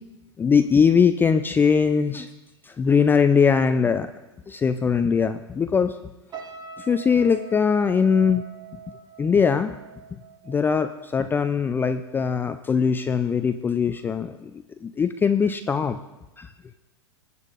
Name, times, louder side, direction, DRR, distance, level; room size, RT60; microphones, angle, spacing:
voice 1, 0.4-2.3 2.6-4.1 4.5-6.0 6.9-8.4 9.2-9.7 10.5-14.5 14.8-16.0 16.4-16.5, left 6 dB, 15° left, 8 dB, 0.4 m, -21 dB
sound 1, 6.3-11.6 11.9-12.2, right 5 dB, 30° right, 1.3 m, -43 dB
20.5 x 8.1 x 2.5 m, 1.0 s
hypercardioid pair, 95°, 14 cm